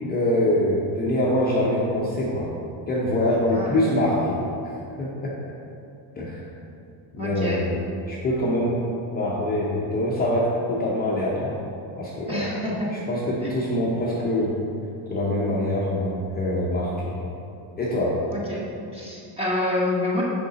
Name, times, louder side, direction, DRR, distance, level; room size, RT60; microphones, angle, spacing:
voice 1, 0.1-2.5 2.9-5.3 6.2-6.4 7.1-7.8 8.1-8.8 9.1-11.6 12.0-12.5 12.9-14.6 15.1-17.2 17.8-18.2, left 1 dB, 20° left, -6 dB, 0.6 m, -24 dB
voice 2, 7.2-7.6 12.3-12.9 13.4-13.5 18.3-18.6 18.9-20.2, left 1 dB, 15° right, -5 dB, 0.9 m, -27 dB
6.6 x 5.8 x 4.0 m, 2.7 s
cardioid pair, 165°, 47 cm